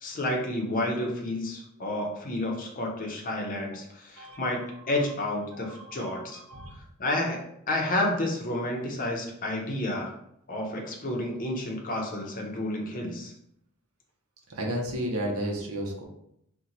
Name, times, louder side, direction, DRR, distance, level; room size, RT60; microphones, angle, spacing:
voice 1, 0.0-4.6 4.9-6.4 7.0-7.4 7.7-10.1 10.5-13.3, left 1 dB, 40° left, 0 dB, 0.6 m, -30 dB
voice 2, 4.2-4.9 5.5-6.8 14.5-16.0, equal, 75° right, 0 dB, 0.7 m, -34 dB
2.8 x 2.2 x 3.8 m, 0.74 s
head